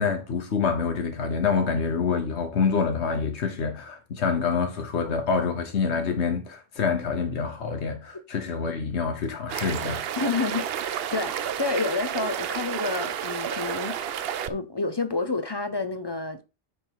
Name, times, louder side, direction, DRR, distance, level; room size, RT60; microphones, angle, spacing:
voice 1, 0.0-10.0, left 5 dB, 85° left, 1.3 m, -26 dB
sound 1, 9.5-14.5, right 9 dB, 70° right, 0.8 m, -31 dB
voice 2, 10.2-16.4, left 3 dB, 30° left, 0.5 m, -29 dB
9.4 x 3.6 x 4.6 m
omnidirectional pair, 1.1 m